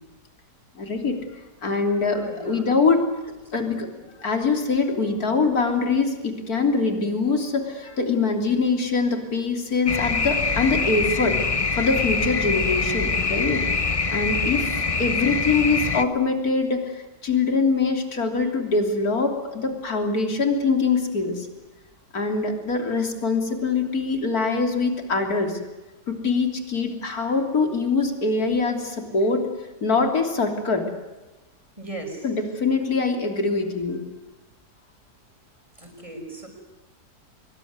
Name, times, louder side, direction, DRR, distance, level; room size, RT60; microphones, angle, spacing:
voice 1, 0.8-1.2 1.6-3.1 3.5-3.9 4.2-11.4 11.7-21.5 22.1-25.6 26.1-29.5 29.8-30.9 32.2-34.0, left 4 dB, 60° left, 5 dB, 3.7 m, -23 dB
voice 2, 2.1-2.7 3.6-4.0 31.8-32.3 35.8-36.5, right 2 dB, 20° right, 3 dB, 6.2 m, -38 dB
sound 1, 9.9-16.0, left 4 dB, 25° left, 0.8 m, -24 dB
24.0 x 22.5 x 9.6 m, 1.1 s
omnidirectional pair, 1.8 m